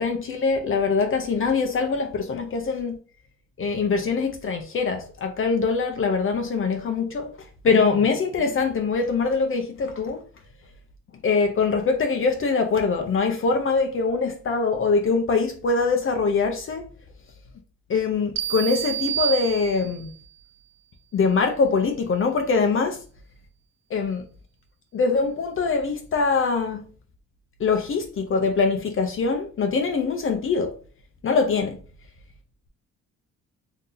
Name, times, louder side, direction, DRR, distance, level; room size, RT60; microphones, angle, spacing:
voice 1, 0.0-3.0 3.6-7.3 7.6-10.2 11.2-16.9 17.9-20.1 21.1-23.0 23.9-24.2 24.9-26.8 27.6-30.7 31.2-31.8, left 4 dB, 45° left, 0.6 m, -23 dB
sound 1, 18.4-20.2, right 12 dB, 60° right, 0.4 m, -28 dB
2.8 x 2.7 x 3.8 m
cardioid pair, 90°, 30 cm